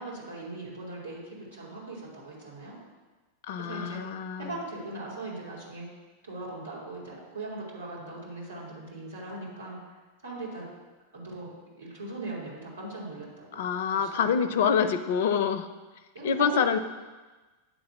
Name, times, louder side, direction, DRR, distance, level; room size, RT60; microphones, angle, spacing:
voice 1, 0.0-2.8 3.6-4.1 4.4-5.9 6.2-9.8 10.2-10.7 11.1-13.7 13.9-14.6 16.1-16.5, right 2 dB, 70° right, -5 dB, 3.0 m, -40 dB
voice 2, 3.5-4.5 13.5-15.7 16.2-16.8, left 7 dB, 55° left, 12 dB, 0.5 m, -26 dB
8.7 x 3.9 x 6.9 m, 1.2 s
figure-of-eight pair, 90°, 0 cm